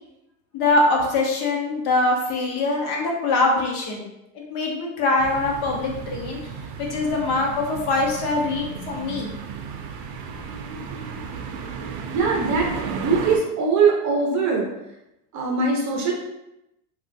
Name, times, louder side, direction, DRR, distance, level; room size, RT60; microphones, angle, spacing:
voice 1, 0.5-4.0 4.3-6.4 6.8-9.3, left 2 dB, 50° left, -1 dB, 1.0 m, -23 dB
sound 1, 5.2-13.4, right 6 dB, 80° right, 0.6 m, -34 dB
voice 2, 12.1-14.7 15.3-16.1, right 4 dB, 40° right, 0 dB, 0.7 m, -21 dB
3.5 x 2.4 x 2.6 m, 0.90 s
supercardioid pair, 125°, 48 cm